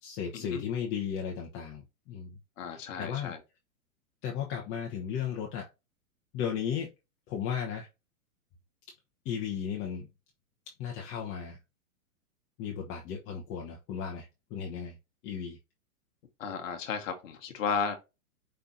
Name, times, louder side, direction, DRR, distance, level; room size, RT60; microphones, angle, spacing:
voice 1, 0.0-2.4 2.7-3.3 4.2-5.7 6.3-6.9 7.3-7.9 9.2-10.1 10.8-11.6 12.6-15.0 15.2-15.6, left 8 dB, 30° left, 1.0 m, -35 dB
voice 2, 2.6-3.4 16.4-18.0, left 6 dB, 65° left, 1.3 m, -34 dB
5.4 x 3.4 x 2.6 m
hypercardioid pair, 125°, 42 cm